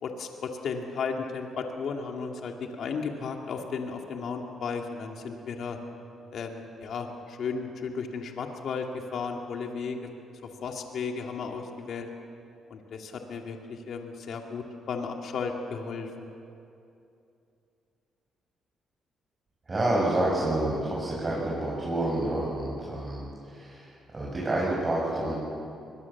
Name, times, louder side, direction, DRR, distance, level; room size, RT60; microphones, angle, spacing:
voice 1, 0.0-5.8 6.3-10.1 10.4-12.1 12.7-16.1, left 5 dB, 65° left, 2 dB, 2.4 m, -34 dB
voice 2, 19.7-25.3, right 1 dB, 30° right, -5 dB, 7.3 m, -28 dB
23.5 x 22.0 x 7.3 m, 2.7 s
cardioid pair, 90°, 0 cm